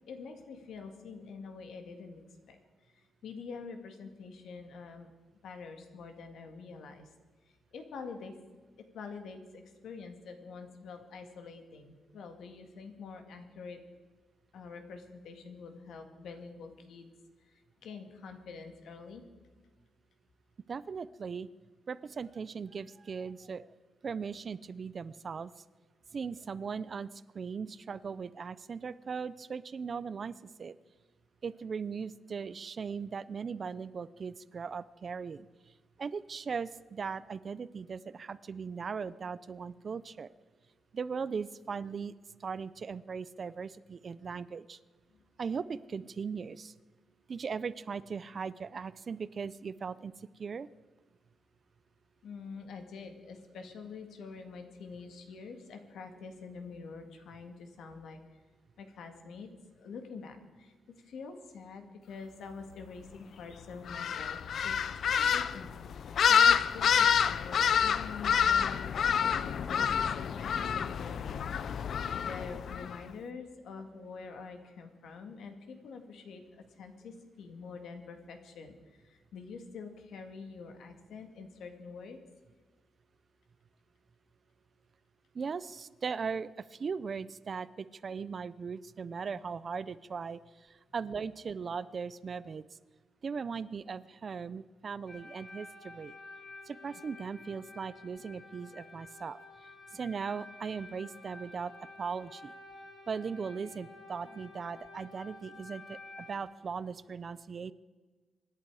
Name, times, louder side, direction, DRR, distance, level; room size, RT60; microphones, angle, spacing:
voice 1, 0.1-2.2 2.5-2.6 2.9-5.1 5.4-7.1 7.4-8.3 8.8-13.8 14.5-17.1 17.4-19.3 45.1-45.2 52.2-58.2 58.8-59.5 59.8-71.5 71.8-82.2, left 5 dB, 75° left, 6 dB, 2.0 m, -46 dB
voice 2, 20.7-21.5 21.9-23.7 24.0-25.5 26.1-27.1 27.3-30.7 31.4-35.5 36.0-40.3 40.9-42.1 42.4-44.8 45.4-46.7 47.3-50.1 50.4-50.7 85.3-90.4 90.9-92.6 93.2-96.1 96.7-99.4 99.9-101.7 102.0-102.5 103.1-107.7, right 5 dB, 35° right, 17 dB, 0.5 m, -38 dB
sound 1, 63.9-73.0, left 7 dB, 55° left, 0.5 m, -28 dB
sound 2, 95.1-106.4, left 3 dB, 30° left, 5.2 m, -51 dB
25.0 x 11.0 x 4.8 m, 1.4 s
wide cardioid pair, 160°, 0 cm